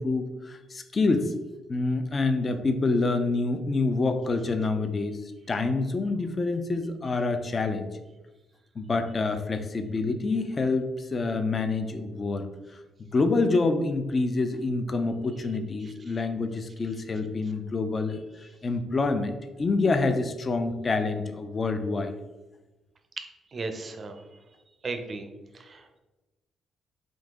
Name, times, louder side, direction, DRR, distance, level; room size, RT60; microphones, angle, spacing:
voice 1, 0.0-1.3 1.7-5.2 5.5-7.9 8.8-12.5 13.1-22.1, left 3 dB, 35° left, 8 dB, 0.4 m, -27 dB
voice 2, 15.8-16.2 23.5-24.2 24.8-25.3 25.5-26.0, right 3 dB, 40° right, 7 dB, 0.5 m, -36 dB
3.8 x 2.7 x 3.6 m, 1.1 s
cardioid pair, 90°, 0 cm